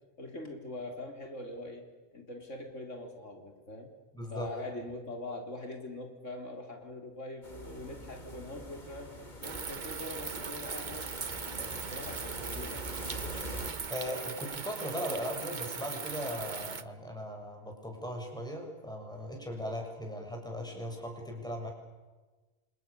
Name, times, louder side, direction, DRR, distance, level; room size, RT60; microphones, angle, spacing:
voice 1, 0.2-3.9 4.3-9.1 9.4-11.1 11.6-13.0, left 2 dB, 80° left, 4 dB, 4.0 m, -43 dB
voice 2, 4.1-4.5 13.9-21.7, equal, 5° left, 1 dB, 7.3 m, -38 dB
sound 1, 7.4-13.7, equal, 35° left, 3.3 m, -44 dB
sound 2, 9.4-16.8, right 5 dB, 40° right, 1.1 m, -39 dB
30.0 x 27.0 x 7.0 m, 1.2 s
omnidirectional pair, 1.3 m